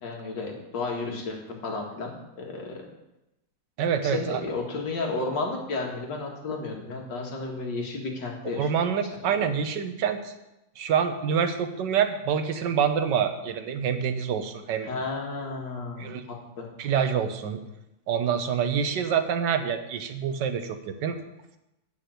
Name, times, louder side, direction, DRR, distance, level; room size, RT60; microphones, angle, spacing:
voice 1, 0.0-2.9 4.0-8.7 14.8-16.1 16.6-16.7, left 3 dB, 90° left, 0 dB, 2.4 m, -32 dB
voice 2, 3.8-4.4 8.5-10.3 10.8-14.9 16.0-16.2 16.8-17.6 18.1-21.2, right 7 dB, 80° right, 8 dB, 1.5 m, -26 dB
8.3 x 5.7 x 7.7 m, 0.92 s
omnidirectional pair, 1.9 m